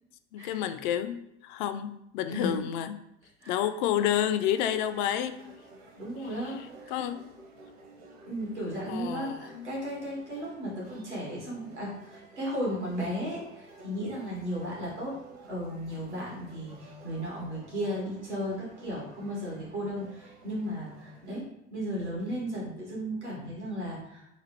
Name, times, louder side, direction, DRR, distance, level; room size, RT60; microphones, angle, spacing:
voice 1, 0.3-1.2 1.4-3.0 3.5-5.4 6.9-7.2 8.9-9.7, left 10 dB, 45° left, 10 dB, 0.4 m, -29 dB
sound 1, 3.9-21.3, right 3 dB, 55° right, 1.0 m, -53 dB
voice 2, 6.0-6.9 8.3-15.2 15.5-24.3, equal, 85° right, -5 dB, 1.6 m, -35 dB
4.0 x 2.5 x 4.4 m, 0.80 s
figure-of-eight pair, 75°, 34 cm